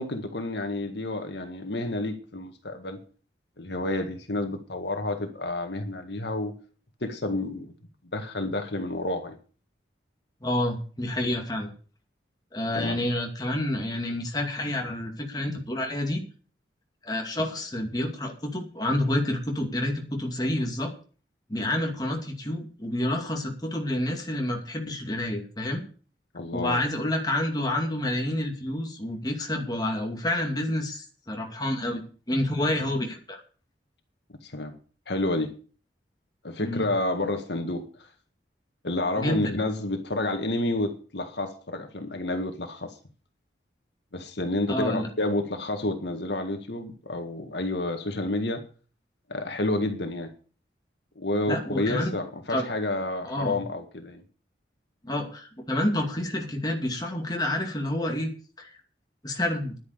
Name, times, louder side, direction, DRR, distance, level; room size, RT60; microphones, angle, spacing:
voice 1, 0.0-3.0 3.6-6.5 7.0-7.7 8.1-9.4 12.7-13.0 26.3-26.8 34.4-34.7 35.1-35.5 36.4-37.9 38.8-42.9 44.1-48.6 49.3-50.3 51.1-54.2, left 2 dB, 75° left, 1.8 m, -30 dB
voice 2, 10.4-11.7 12.5-16.2 17.0-20.9 21.5-25.8 26.5-32.0 32.3-33.4 36.6-36.9 39.2-39.6 44.7-45.1 51.5-52.1 52.5-52.7 53.2-53.6 55.0-58.3 58.6-58.7 59.2-59.7, left 1 dB, 20° left, 2.5 m, -28 dB
11.0 x 9.6 x 6.7 m
head